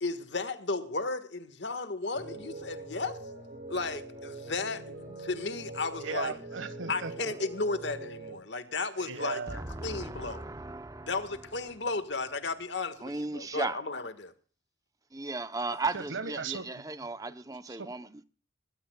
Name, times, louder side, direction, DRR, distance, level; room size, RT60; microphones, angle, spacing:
voice 1, 0.0-3.2 3.7-6.3 6.9-10.4 11.1-14.3, left 3 dB, 65° left, 1.5 m, -34 dB
sound 1, 2.1-8.4, right 2 dB, 45° right, 6.2 m, -43 dB
voice 2, 6.0-7.3 8.7-9.6 15.9-16.8 17.7-17.9, right 4 dB, 85° right, 1.4 m, -38 dB
voice 3, 9.5-11.5 13.0-13.8 15.1-18.2, right 3 dB, 20° right, 0.7 m, -36 dB
22.0 x 15.5 x 2.3 m
head